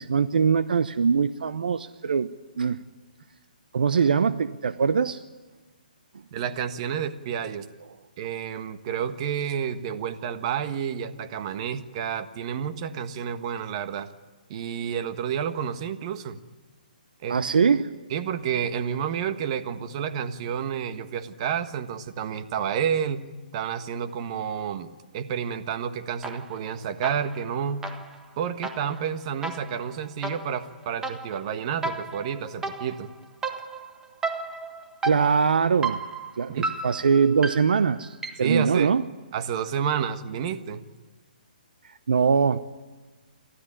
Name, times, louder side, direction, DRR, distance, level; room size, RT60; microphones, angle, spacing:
voice 1, 0.0-2.3 2.6-2.8 3.7-5.2 17.3-17.9 35.0-36.0 36.4-39.0 42.1-42.6, right 6 dB, 75° right, 13 dB, 0.8 m, -22 dB
voice 2, 6.3-7.6 8.2-14.1 14.5-16.4 17.2-17.4 18.1-23.2 23.5-27.9 28.4-33.1 36.5-36.7 38.4-38.9 39.3-40.8, right 8 dB, 40° right, 9 dB, 1.4 m, -30 dB
sound 1, 26.2-26.7 27.0-38.6, right 3 dB, 10° right, 1.5 m, -35 dB
29.0 x 13.0 x 10.0 m, 1.3 s
hypercardioid pair, 140°, 5 cm